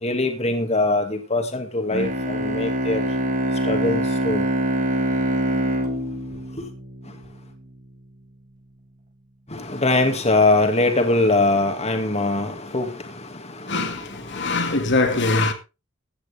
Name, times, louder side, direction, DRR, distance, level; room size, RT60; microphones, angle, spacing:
voice 1, 0.0-3.1 3.6-4.4 6.6-6.7 9.5-14.8, left 2 dB, 30° left, 2.2 m, -23 dB
Bowed string instrument, 1.9-7.5, equal, 40° right, 1.5 m, -24 dB
voice 2, 13.7-15.5, left 2 dB, 60° left, 2.2 m, -22 dB
15.5 x 9.7 x 3.5 m
head